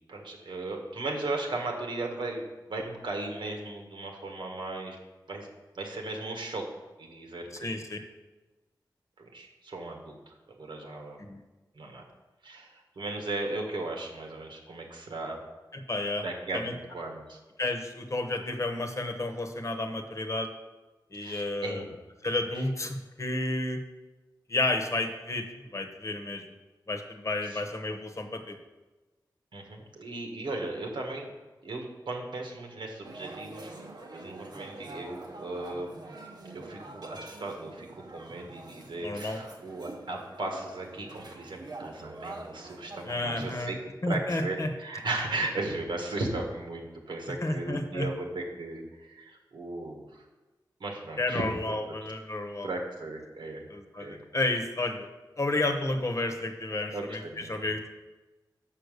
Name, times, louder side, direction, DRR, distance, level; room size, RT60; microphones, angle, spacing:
voice 1, 0.1-5.0 5.3-5.5 5.8-6.6 7.0-7.8 9.2-11.2 11.8-12.0 12.4-15.4 16.2-17.4 21.1-21.9 27.4-27.6 29.5-31.3 31.6-33.7 34.1-35.9 36.5-43.8 44.1-50.2 50.8-51.7 52.6-53.6 54.0-54.2 56.9-57.6, right 2 dB, 85° right, 2 dB, 1.6 m, -36 dB
voice 2, 7.6-8.0 11.2-11.4 15.7-16.2 16.5-16.7 17.6-20.5 21.1-21.8 22.2-23.8 24.5-26.4 26.9-28.6 39.0-39.4 43.0-43.7 44.0-44.7 47.4-48.1 51.2-52.7 53.7-55.1 55.4-57.9, left 2 dB, 40° left, 5 dB, 1.0 m, -31 dB
sound 1, 33.0-43.6, right 2 dB, 65° right, 1.0 m, -45 dB
6.6 x 5.7 x 6.7 m, 1.2 s
cardioid pair, 60°, 8 cm